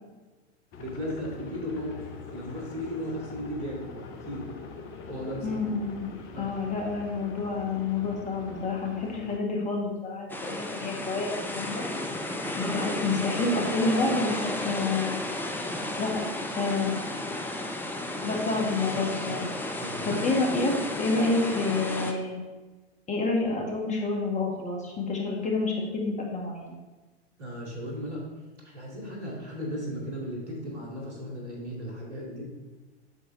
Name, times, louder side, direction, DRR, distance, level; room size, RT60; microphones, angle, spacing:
sound 1, 0.7-9.4, left 4 dB, 40° left, 1.1 m, -43 dB
voice 1, 0.8-4.5 5.1-5.6 6.3-6.5 19.8-20.2 27.4-28.2 28.6-32.5, equal, 85° right, -2 dB, 2.4 m, -36 dB
voice 2, 5.4-6.1 6.4-11.8 12.6-15.2 16.0-16.2 16.6-16.9 18.2-19.5 20.0-22.4 23.1-26.8, left 3 dB, 20° left, -1 dB, 1.8 m, -28 dB
sound 2, 10.3-22.1, left 1 dB, 5° left, 0.7 m, -33 dB
8.0 x 6.9 x 3.3 m, 1.2 s
figure-of-eight pair, 95°, 33 cm